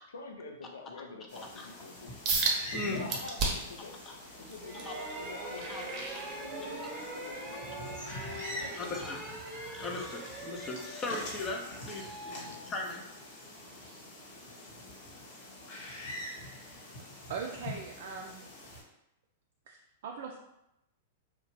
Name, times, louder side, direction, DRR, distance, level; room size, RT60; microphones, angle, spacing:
voice 1, 0.1-2.2 2.7-3.9 4.4-6.0 6.4-6.8 7.1-8.0 8.6-9.2 12.3-12.7, left 3 dB, 85° left, 3 dB, 0.4 m, -46 dB
sound 1, 1.3-18.8, left 1 dB, 55° left, 1.3 m, -45 dB
voice 2, 1.3-1.7 2.7-3.2 3.8-4.1 4.8-5.0 5.7-5.9 8.5-9.2 9.7-13.0, left 2 dB, 25° left, 1 dB, 0.5 m, -39 dB
sound 2, 2.3-2.6 3.1-3.8 4.3-6.9 7.3-7.6 8.1-8.2, right 4 dB, 40° right, 0.7 m, -33 dB
sound 3, 4.6-13.3, right 1 dB, 10° right, 0.8 m, -43 dB
voice 3, 17.3-18.5 19.7-19.8 20.0-20.4, right 5 dB, 65° right, 0 dB, 0.3 m, -40 dB
2.7 x 2.1 x 3.0 m, 0.86 s
hypercardioid pair, 110°, 0 cm